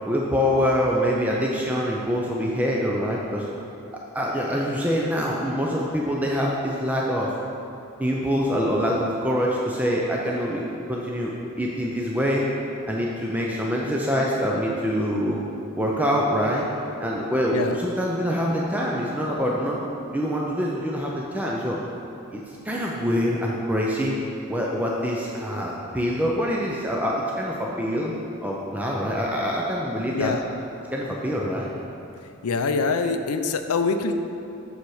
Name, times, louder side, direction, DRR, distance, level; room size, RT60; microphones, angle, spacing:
voice 1, 0.1-3.5 4.1-7.3 8.0-12.5 12.9-15.4 15.8-16.7 17.0-19.8 20.1-21.8 22.3-24.2 24.5-28.1 28.4-30.4 30.9-31.7, equal, 5° right, -3 dB, 0.5 m, -25 dB
voice 2, 32.4-34.1, left 4 dB, 85° left, 8 dB, 0.5 m, -24 dB
7.1 x 6.3 x 4.8 m, 2.8 s
head